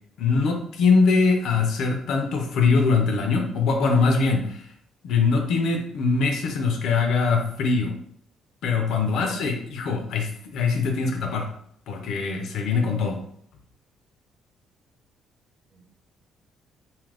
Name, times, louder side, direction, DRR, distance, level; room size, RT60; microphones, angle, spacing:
voice 1, 0.2-4.6 5.0-7.9 8.6-11.5 11.9-13.2, left 4 dB, 75° left, 3 dB, 0.6 m, -22 dB
voice 2, 8.7-9.4 15.7-15.8, right 2 dB, 45° right, -1 dB, 1.1 m, -47 dB
2.8 x 2.4 x 3.3 m, 0.66 s
cardioid pair, 105°, 0 cm